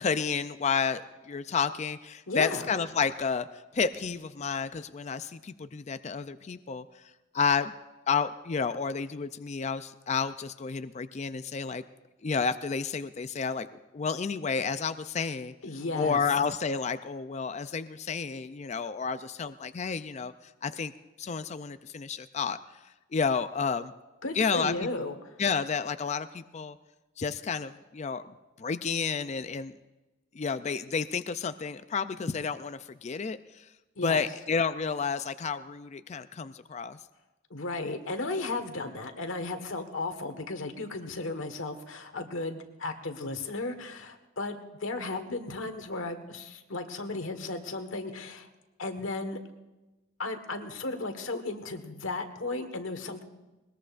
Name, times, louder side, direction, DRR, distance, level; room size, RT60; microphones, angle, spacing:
voice 1, 0.0-6.9 7.3-7.7 8.1-11.8 12.2-13.7 13.9-15.5 15.9-20.3 20.6-20.9 21.2-22.6 23.1-23.9 24.3-24.7 25.4-26.8 27.2-28.3 28.6-29.7 30.3-33.7 34.0-37.0, left 5 dB, 35° left, 11 dB, 0.4 m, -30 dB
voice 2, 2.3-2.7 15.6-16.2 24.2-25.3 34.0-34.2 37.5-48.5 48.8-49.4 50.2-53.2, left 2 dB, 85° left, 7 dB, 1.5 m, -35 dB
20.5 x 20.0 x 2.5 m, 1.1 s
head